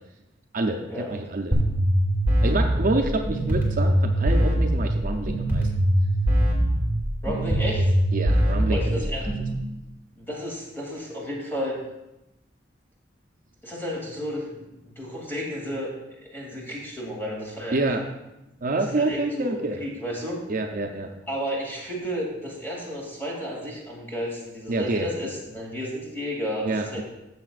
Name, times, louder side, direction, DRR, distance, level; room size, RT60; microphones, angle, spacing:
voice 1, 0.5-1.6 2.4-5.7 8.1-9.0 17.7-18.0 18.6-19.9 20.5-21.1 24.7-25.1 26.6-27.0, right 2 dB, 45° right, 3 dB, 0.6 m, -27 dB
sound 1, 1.5-9.5, right 1 dB, 10° right, 2.2 m, -22 dB
voice 2, 7.2-7.9 8.7-9.3 10.2-11.8 13.6-15.9 16.2-17.8 18.9-20.4 21.3-27.0, equal, 10° left, -4 dB, 2.6 m, -32 dB
13.5 x 7.2 x 2.4 m, 0.94 s
head